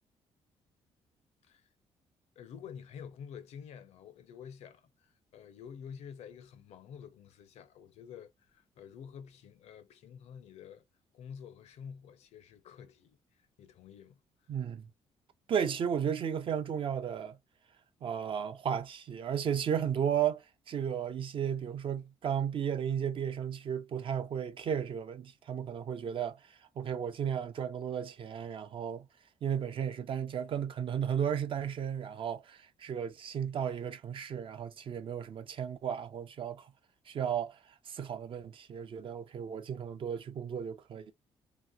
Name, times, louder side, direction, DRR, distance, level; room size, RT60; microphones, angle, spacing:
voice 1, 2.4-10.8 11.1-14.5, left 7 dB, 75° left, 0.6 m, -49 dB
voice 2, 14.5-14.9 15.5-17.4 18.0-29.1 29.4-36.7 37.1-41.1, right 8 dB, 50° right, 0.6 m, -34 dB
2.9 x 2.9 x 2.3 m
cardioid pair, 120°, 11 cm